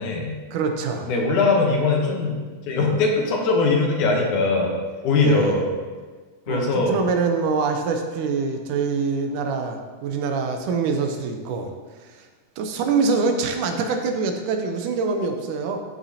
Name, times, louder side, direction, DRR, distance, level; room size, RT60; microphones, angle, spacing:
voice 1, 0.0-0.3 1.1-2.4 2.7-4.7 5.0-5.7 6.5-6.9, left 3 dB, 70° left, 0 dB, 2.3 m, -21 dB
voice 2, 0.5-1.1 5.2-5.6 6.5-11.7 12.0-12.3 12.6-15.8, right 4 dB, 75° right, 4 dB, 2.2 m, -25 dB
13.0 x 5.9 x 2.8 m, 1.4 s
omnidirectional pair, 3.9 m